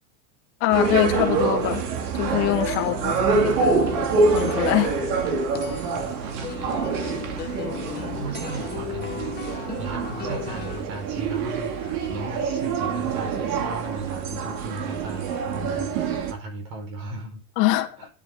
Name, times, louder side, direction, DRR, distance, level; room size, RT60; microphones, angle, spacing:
voice 1, 0.6-1.8 2.1-4.0 4.3-4.9 17.6-18.0, left 16 dB, 60° left, 1.9 m, -24 dB
sound 1, 0.7-16.3, right 4 dB, 75° right, 2.8 m, -26 dB
sound 2, 2.3-10.8, left 10 dB, 20° left, 0.7 m, -36 dB
voice 2, 2.8-3.1 5.6-17.4 18.0-18.1, right 2 dB, 50° right, 4.7 m, -37 dB
10.5 x 8.8 x 3.8 m
supercardioid pair, 150°, 47 cm